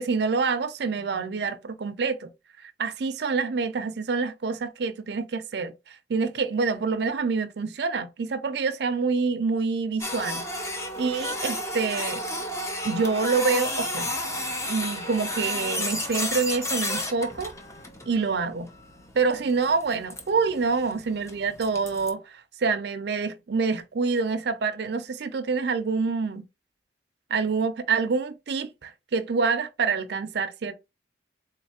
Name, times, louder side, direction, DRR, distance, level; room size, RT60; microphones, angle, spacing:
voice 1, 0.0-2.3 2.6-12.2 12.8-14.1 14.7-17.5 18.1-18.7 19.2-26.4 27.3-30.7, right 4 dB, 60° right, 0.4 m, -27 dB
Printer, 10.0-22.1, left 1 dB, 15° left, 0.5 m, -32 dB
3.9 x 3.1 x 2.8 m
head